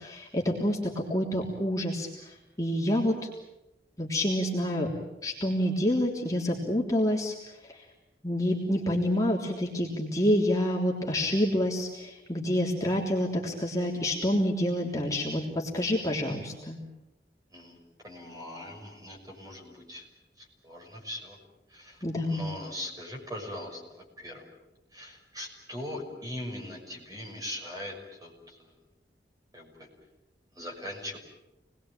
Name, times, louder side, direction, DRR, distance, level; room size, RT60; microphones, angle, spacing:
voice 1, 0.0-3.3 4.0-4.9 5.2-7.3 8.2-16.8 22.0-22.5, left 1 dB, 20° left, -2 dB, 3.4 m, -28 dB
voice 2, 18.0-20.1 20.4-21.4 21.7-24.4 24.9-28.7 29.5-29.9 30.5-31.2, left 1 dB, 20° right, 1 dB, 6.1 m, -41 dB
28.5 x 20.5 x 9.0 m, 0.96 s
head